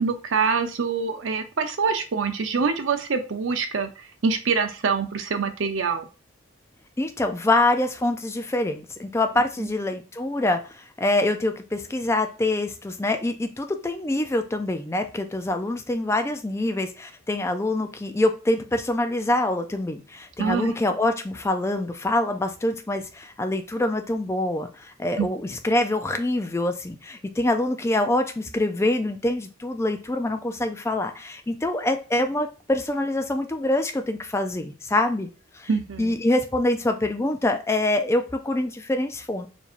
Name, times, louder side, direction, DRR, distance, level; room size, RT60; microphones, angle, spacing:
voice 1, 0.0-3.9 4.2-6.1 9.6-9.7 20.4-20.7 25.2-25.3 35.7-36.1, right 5 dB, 75° right, 7 dB, 0.6 m, -25 dB
voice 2, 7.0-35.3 35.5-35.7 36.0-39.5, left 1 dB, 15° left, 6 dB, 0.4 m, -25 dB
4.6 x 2.7 x 2.5 m, 0.33 s
head